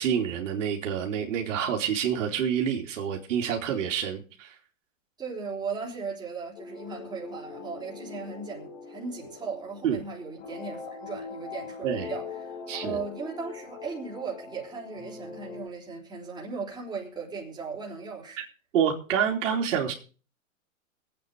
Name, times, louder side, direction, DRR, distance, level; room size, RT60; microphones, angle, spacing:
voice 1, 0.0-4.6 9.8-10.0 11.8-12.1 12.7-13.0 18.4-18.5 18.7-19.9, right 8 dB, 65° right, 3.2 m, -27 dB
voice 2, 5.2-18.4, right 4 dB, 10° right, 3.9 m, -37 dB
sound 1, 6.6-15.7, left 5 dB, 60° left, 4.4 m, -42 dB
23.5 x 8.8 x 3.8 m
hypercardioid pair, 130°, 40 cm